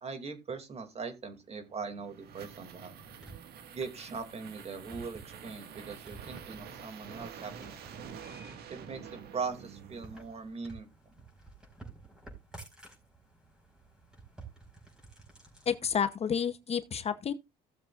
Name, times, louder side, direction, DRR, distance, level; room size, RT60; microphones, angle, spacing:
voice 1, 0.0-2.9 3.7-7.8 8.7-10.9, right 5 dB, 40° right, 2.5 m, -40 dB
sound 1, 1.7-10.5, right 7 dB, 70° right, 1.8 m, -48 dB
sound 2, 2.6-15.8, right 3 dB, 5° right, 4.7 m, -53 dB
voice 2, 15.7-17.3, left 7 dB, 35° left, 0.8 m, -30 dB
16.5 x 7.3 x 2.5 m
cardioid pair, 110°, 17 cm